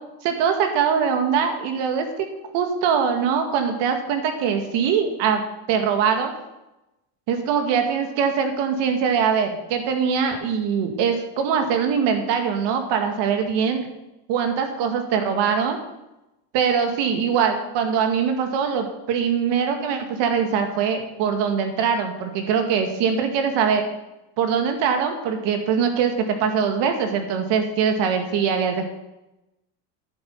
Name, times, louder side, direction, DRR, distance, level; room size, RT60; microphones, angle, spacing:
voice 1, 0.2-2.3 2.5-5.4 5.7-6.3 7.3-13.9 14.3-15.8 16.5-23.8 24.4-28.8, right 6 dB, 65° right, 5 dB, 2.1 m, -22 dB
10.5 x 8.3 x 5.8 m, 0.96 s
supercardioid pair, 125°, 46 cm